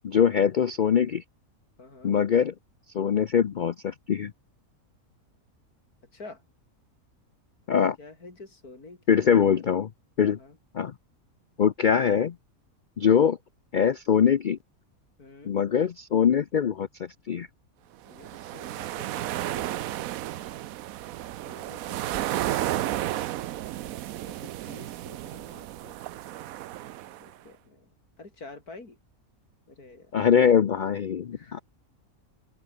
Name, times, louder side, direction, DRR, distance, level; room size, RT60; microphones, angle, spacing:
voice 1, 0.0-1.2 2.0-2.5 2.9-4.3 7.7-8.0 9.1-9.9 10.2-10.4 10.7-10.9 11.6-12.4 13.0-13.4 13.7-14.6 15.4-17.5 30.1-31.6, left 7 dB, 60° left, 0.5 m, -23 dB
voice 2, 1.8-2.2 6.1-6.4 8.0-9.6 10.2-10.6 15.2-15.6 18.1-19.7 21.4-23.5 23.9-24.0 24.2-26.0 27.2-27.9 28.2-29.0 29.7-30.1 31.3-31.6, left 3 dB, 85° left, 5.0 m, -48 dB
sound 1, 18.1-27.3, right 14 dB, 75° right, 1.0 m, -33 dB
open air
omnidirectional pair, 1.6 m